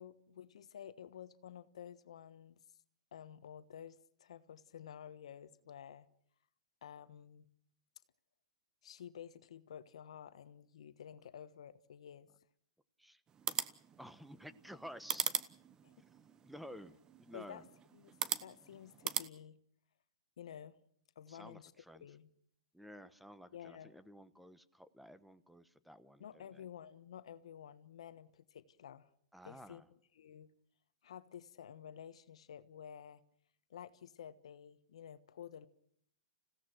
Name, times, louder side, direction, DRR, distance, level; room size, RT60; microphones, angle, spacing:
voice 1, 0.0-2.6 3.1-6.1 6.8-7.5 8.8-12.3 15.8-15.9 17.3-17.6 17.9-19.6 20.4-20.8 21.1-22.3 23.5-23.9 26.2-29.1 29.4-29.8 30.1-30.5 31.0-33.2 33.7-35.7, left 9 dB, 75° left, 1.2 m, -52 dB
sound 1, 13.3-19.3, right 8 dB, 20° right, 1.0 m, -41 dB
voice 2, 14.0-15.3 16.4-17.7 21.3-22.1 22.7-26.6 29.3-29.9, equal, ahead, 1.1 m, -53 dB
28.5 x 16.5 x 6.1 m
hypercardioid pair, 130°, 3 cm